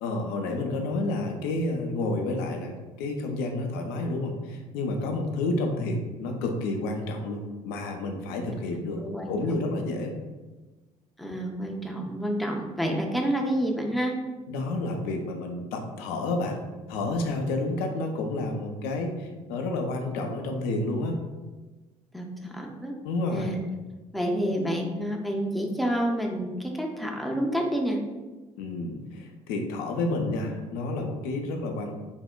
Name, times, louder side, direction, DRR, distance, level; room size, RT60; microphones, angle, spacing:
voice 1, 0.0-2.7 3.0-9.0 9.3-10.1 14.5-16.6 16.9-21.2 23.0-23.6 24.4-24.5 28.6-32.0, left 2 dB, 65° left, 3 dB, 0.4 m, -30 dB
voice 2, 8.4-9.6 11.2-14.2 22.1-22.9 23.3-23.6 24.1-28.0, equal, ahead, 1 dB, 0.4 m, -29 dB
3.4 x 2.0 x 2.2 m, 1.2 s
figure-of-eight pair, 50°, 18 cm